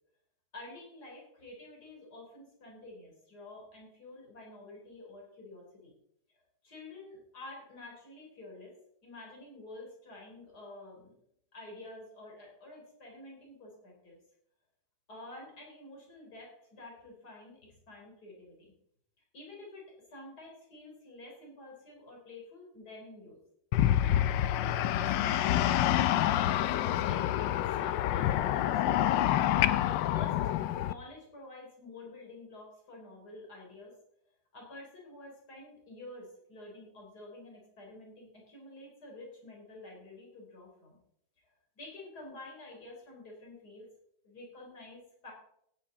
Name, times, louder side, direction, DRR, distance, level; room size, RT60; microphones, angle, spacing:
voice 1, 0.5-5.9 6.6-8.7 9.0-11.2 11.5-14.2 15.1-18.7 19.3-23.4 24.6-26.7 27.1-29.4 30.1-30.5 30.8-33.9 34.5-41.0 41.8-43.9 44.2-45.3, left 2 dB, 60° left, -1 dB, 4.4 m, -49 dB
sound 1, 23.7-30.9, left 12 dB, 85° left, 1.3 m, -27 dB
16.0 x 9.0 x 3.8 m, 0.73 s
omnidirectional pair, 1.9 m